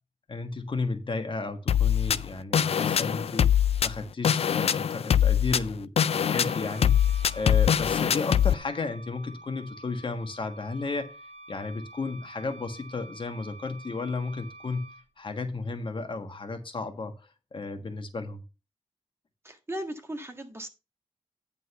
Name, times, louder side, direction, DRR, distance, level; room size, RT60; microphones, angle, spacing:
voice 1, 0.3-14.9 15.2-18.4, left 3 dB, 45° left, 1.4 m, -34 dB
sound 1, 1.7-8.5, left 9 dB, 65° left, 0.4 m, -23 dB
Wind instrument woodwind instrument, 6.2-15.0, right 2 dB, 65° right, 1.3 m, -48 dB
voice 2, 19.4-20.7, right 1 dB, 20° right, 1.6 m, -37 dB
9.7 x 3.9 x 6.8 m
wide cardioid pair, 105°, 11 cm